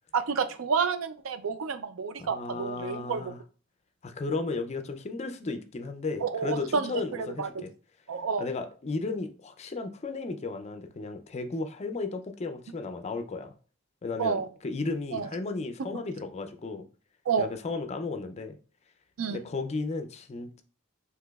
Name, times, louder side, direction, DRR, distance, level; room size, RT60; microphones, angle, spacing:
voice 1, 0.1-3.3 6.2-7.6 8.1-8.5 14.2-14.5 15.1-15.3 15.9-16.0 17.3-17.5 19.2-19.4, right 5 dB, 70° right, 0.4 m, -30 dB
voice 2, 2.2-3.4 4.0-7.7 8.4-13.5 14.0-16.9 17.4-18.6 19.3-20.6, left 3 dB, 30° left, 0.4 m, -34 dB
5.8 x 2.9 x 2.3 m
head